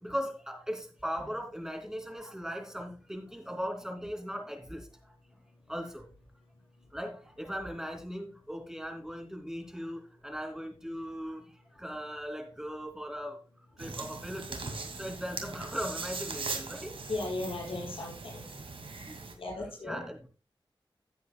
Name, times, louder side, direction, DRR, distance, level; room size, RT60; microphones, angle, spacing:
voice 1, 0.0-4.9 5.7-6.1 6.9-13.4 13.8-14.6 15.0-17.0 19.1-19.2 19.8-20.3, equal, 5° right, 2.9 m, -38 dB
sound 1, 13.8-19.3, right 4 dB, 75° right, 2.2 m, -40 dB
voice 2, 17.1-18.5 19.4-20.0, left 2 dB, 90° left, 6.1 m, -36 dB
16.0 x 8.2 x 2.3 m
wide cardioid pair, 80°, 9 cm